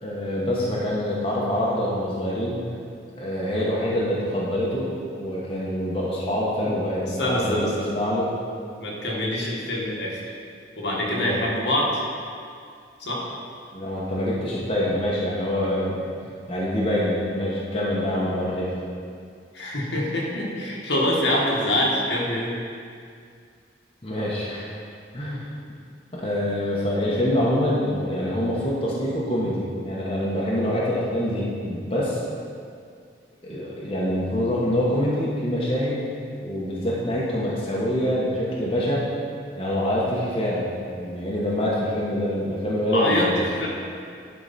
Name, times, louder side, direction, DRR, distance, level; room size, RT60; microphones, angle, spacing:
voice 1, 0.0-2.6 3.2-4.9 5.2-8.3 11.2-11.4 13.7-16.1 16.5-18.7 24.0-24.7 25.1-25.5 26.1-32.2 33.4-39.0 39.6-43.4, equal, 30° left, -6 dB, 1.1 m, -25 dB
voice 2, 7.2-7.9 8.8-10.2 10.8-11.9 13.0-13.2 19.5-22.6 42.9-43.7, left 1 dB, 75° left, -4 dB, 1.6 m, -25 dB
11.0 x 4.6 x 4.2 m, 2.3 s
head